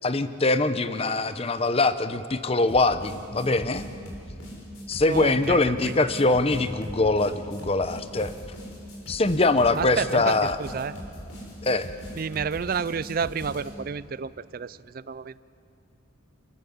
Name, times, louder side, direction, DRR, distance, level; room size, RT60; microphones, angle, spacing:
voice 1, 0.0-3.9 4.9-8.3 9.1-10.6 11.6-11.9, left 2 dB, 25° left, 12 dB, 0.7 m, -23 dB
sound 1, 2.7-13.7, equal, 90° left, 6.0 m, -40 dB
voice 2, 5.1-6.1 9.7-10.9 12.2-15.4, right 5 dB, 45° right, 18 dB, 0.4 m, -30 dB
28.5 x 14.5 x 7.2 m, 2.8 s
head